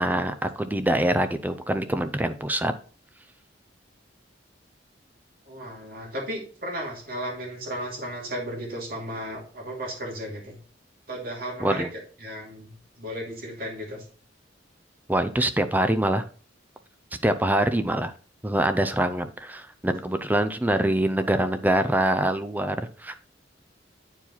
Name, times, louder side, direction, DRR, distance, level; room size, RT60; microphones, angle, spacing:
voice 1, 0.0-2.7 11.6-11.9 15.1-16.2 17.2-18.1 18.4-23.2, right 1 dB, 10° right, 9 dB, 0.5 m, -24 dB
voice 2, 5.5-10.6 11.1-11.8 12.2-14.0, equal, 50° right, -1 dB, 2.7 m, -34 dB
8.9 x 4.8 x 4.1 m, 0.41 s
head